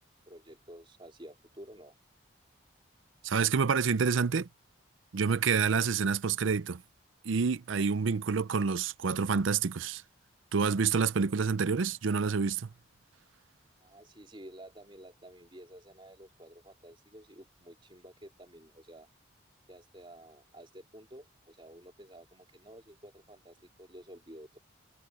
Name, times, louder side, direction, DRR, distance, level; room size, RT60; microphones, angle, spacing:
voice 1, 0.3-1.9 13.8-19.1 19.7-24.6, right 1 dB, 25° right, 3.8 m, -51 dB
voice 2, 3.2-4.5 5.1-6.8 7.2-10.0 10.5-12.7, right 5 dB, 75° right, 0.5 m, -28 dB
head